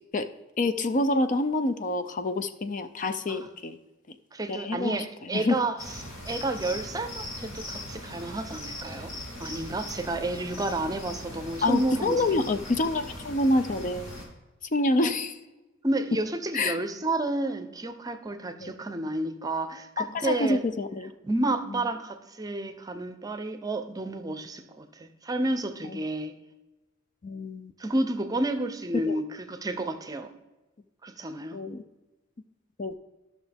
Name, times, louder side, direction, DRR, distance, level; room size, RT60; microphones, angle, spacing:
voice 1, 0.6-3.8 4.5-5.6 11.6-14.1 14.7-15.3 16.5-16.8 18.6-18.7 20.0-21.1 25.9-26.0 27.2-27.7 29.1-29.2 31.5-31.8 32.8-33.0, left 2 dB, 40° left, 10 dB, 0.5 m, -27 dB
voice 2, 4.3-5.8 6.2-9.1 9.4-12.2 12.5-12.6 15.0-15.1 15.8-20.6 21.2-26.3 27.8-29.2 29.5-30.3 31.0-31.6, right 2 dB, 20° right, 8 dB, 0.6 m, -30 dB
sound 1, 5.8-14.2, left 1 dB, 70° left, 2.4 m, -40 dB
13.0 x 6.1 x 3.4 m, 1.1 s
head